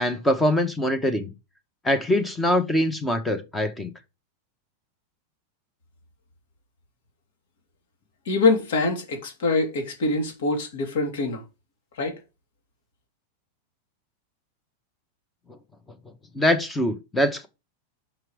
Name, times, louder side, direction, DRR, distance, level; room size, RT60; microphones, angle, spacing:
voice 1, 0.0-1.3 1.8-3.9 16.3-17.5, left 1 dB, 5° left, 0.8 m, -23 dB
voice 2, 8.3-11.4 12.0-12.2, left 3 dB, 70° left, 2.7 m, -24 dB
6.0 x 4.9 x 4.9 m
supercardioid pair, 175°, 0 cm